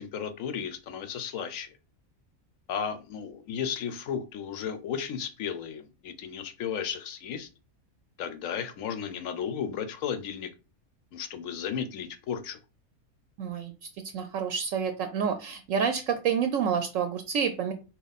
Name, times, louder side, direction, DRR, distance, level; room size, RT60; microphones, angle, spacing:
voice 1, 0.0-1.7 2.7-7.5 8.2-10.5 11.1-12.6, left 7 dB, 70° left, 1.1 m, -34 dB
voice 2, 13.4-17.7, right 7 dB, 70° right, 0.9 m, -29 dB
4.2 x 3.0 x 4.0 m
omnidirectional pair, 1.5 m